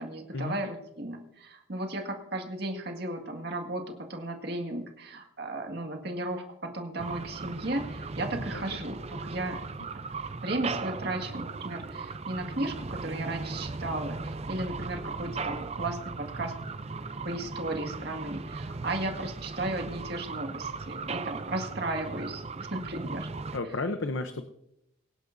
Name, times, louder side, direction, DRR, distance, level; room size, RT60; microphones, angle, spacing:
voice 1, 0.0-9.6 10.4-16.5 17.2-23.3, right 2 dB, 50° right, 3 dB, 2.0 m, -35 dB
sound 1, 7.0-23.6, right 4 dB, 30° right, 0.5 m, -37 dB
voice 2, 8.4-8.8 23.5-24.5, left 3 dB, 65° left, 8 dB, 0.8 m, -33 dB
24.5 x 11.0 x 2.7 m, 0.82 s
head